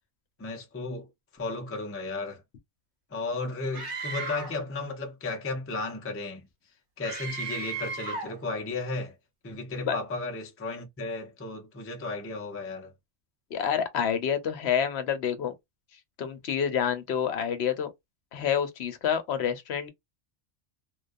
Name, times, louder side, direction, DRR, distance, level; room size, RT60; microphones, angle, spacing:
voice 1, 0.4-1.1 1.3-2.4 3.1-6.5 7.0-9.1 9.4-12.9, left 3 dB, 20° left, 0.4 m, -34 dB
Screaming, 3.7-4.6 7.0-8.4, right 4 dB, 55° right, 0.9 m, -35 dB
voice 2, 13.5-15.5 16.2-17.9 18.3-19.9, left 8 dB, 70° left, 0.8 m, -28 dB
2.3 x 2.2 x 2.4 m
omnidirectional pair, 1.2 m